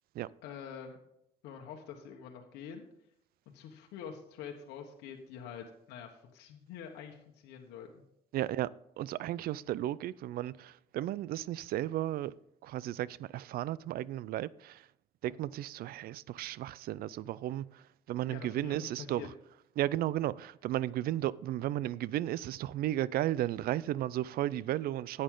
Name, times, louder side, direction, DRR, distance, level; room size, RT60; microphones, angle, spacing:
voice 1, 0.4-1.0 1.4-2.8 3.5-8.0 18.3-19.3, left 7 dB, 90° left, 1.3 m, -46 dB
voice 2, 8.3-8.7 9.0-12.3 12.6-14.9 15.2-19.3 19.8-25.2, right 13 dB, 65° right, 0.4 m, -34 dB
11.5 x 8.7 x 3.8 m
cardioid pair, 110°, 17 cm